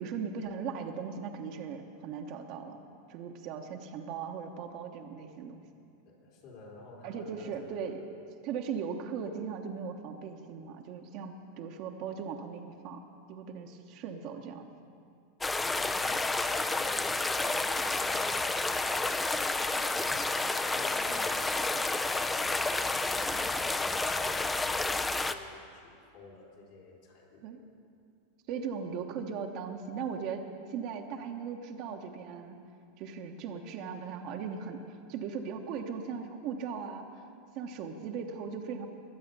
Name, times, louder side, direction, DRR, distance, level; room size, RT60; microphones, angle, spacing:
voice 1, 0.0-2.8 3.1-5.6 7.0-8.0 8.4-13.0 13.3-14.7 27.4-27.6 28.5-30.4 30.7-32.6 33.0-37.2 37.5-38.9, right 6 dB, 50° right, 3 dB, 1.1 m, -38 dB
voice 2, 6.0-7.9 15.5-22.2 22.5-23.4 23.7-27.4, left 3 dB, 60° left, -2 dB, 4.0 m, -51 dB
sound 1, 15.4-25.3, left 3 dB, 15° left, 0.6 m, -30 dB
20.5 x 7.7 x 5.4 m, 2.4 s
hypercardioid pair, 95°, 0 cm